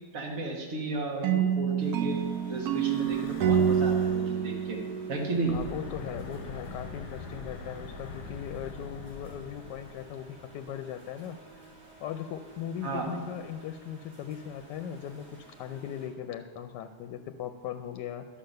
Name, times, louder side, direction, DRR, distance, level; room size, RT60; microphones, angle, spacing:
voice 1, 0.1-4.8 5.1-5.6 12.8-13.2, right 2 dB, 55° right, -1 dB, 1.8 m, -33 dB
sound 1, 1.2-6.1, right 8 dB, 70° right, 1.0 m, -28 dB
sound 2, 1.8-16.1, right 2 dB, 35° right, 3.4 m, -54 dB
Breathing / Wind, 2.5-4.5 5.4-10.8, left 4 dB, 70° left, 1.4 m, -44 dB
voice 2, 5.5-11.4 12.0-18.3, left 9 dB, 90° left, 8 dB, 1.2 m, -39 dB
11.5 x 5.8 x 6.5 m, 1.5 s
omnidirectional pair, 1.8 m